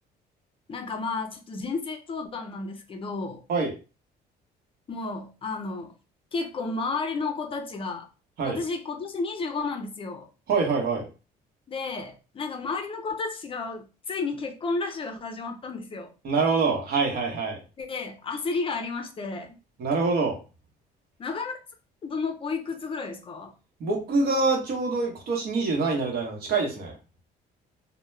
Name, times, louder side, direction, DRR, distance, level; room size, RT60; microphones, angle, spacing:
voice 1, 0.7-3.4 4.9-5.9 6.3-8.1 8.4-10.3 11.7-16.1 17.8-19.6 21.2-21.6 22.0-23.5, left 4 dB, 30° left, 0.5 m, -32 dB
voice 2, 10.5-11.1 16.2-17.6 19.8-20.4 23.8-26.9, right 4 dB, 65° right, 0.9 m, -25 dB
2.2 x 2.1 x 3.1 m
cardioid pair, 110°, 17 cm